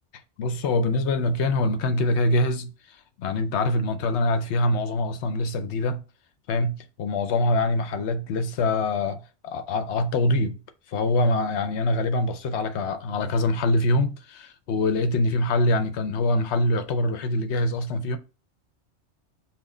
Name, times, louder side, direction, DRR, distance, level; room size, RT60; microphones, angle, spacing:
voice 1, 0.4-2.7 3.2-6.0 6.5-10.6 10.9-18.2, left 2 dB, 75° left, 0.9 m, -24 dB
5.9 x 2.1 x 3.7 m
omnidirectional pair, 1.2 m